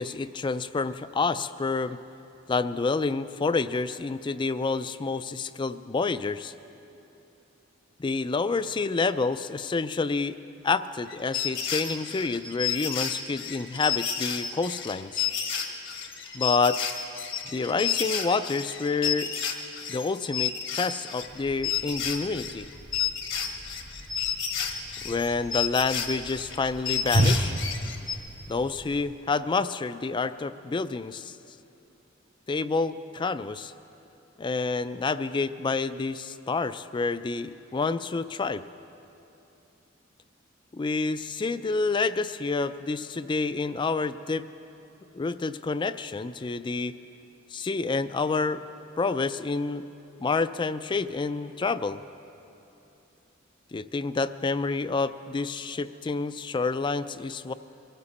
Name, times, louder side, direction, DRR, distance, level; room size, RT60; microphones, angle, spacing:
voice 1, 0.0-2.0 2.5-6.5 8.0-10.4 10.6-15.2 16.3-16.8 17.5-19.4 19.9-22.7 25.0-27.5 28.5-31.4 32.5-33.7 34.4-38.7 40.7-44.5 45.1-47.0 47.5-48.6 49.0-49.9 50.2-52.0 53.7-57.5, left 4 dB, 25° left, 13 dB, 0.4 m, -28 dB
sound 1, 11.1-21.4 21.6-28.1, left 7 dB, 70° left, 1.3 m, -31 dB
Whoosh swoosh swish, 21.2-29.0, right 1 dB, 70° right, 3.5 m, -33 dB
23.0 x 14.5 x 4.2 m, 2.9 s
head